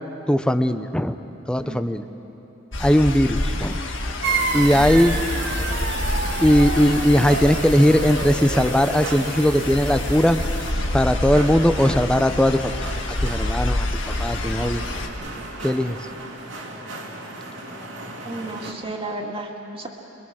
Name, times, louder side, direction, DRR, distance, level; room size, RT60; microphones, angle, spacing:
voice 1, 0.3-1.2 1.5-2.1 2.8-3.8 4.5-5.2 6.4-10.4 10.9-13.9 14.2-14.8 15.6-16.0, equal, 5° left, 9 dB, 0.7 m, -19 dB
sound 1, 2.7-15.1, left 1 dB, 80° left, 1.7 m, -27 dB
sound 2, 4.2-10.7, right 4 dB, 65° right, 1.2 m, -29 dB
voice 2, 4.5-4.9 18.2-19.9, right 2 dB, 30° right, 0 dB, 2.2 m, -33 dB
sound 3, 4.8-18.7, right 2 dB, 90° right, 2.8 m, -38 dB
27.0 x 22.0 x 6.4 m, 2.9 s
head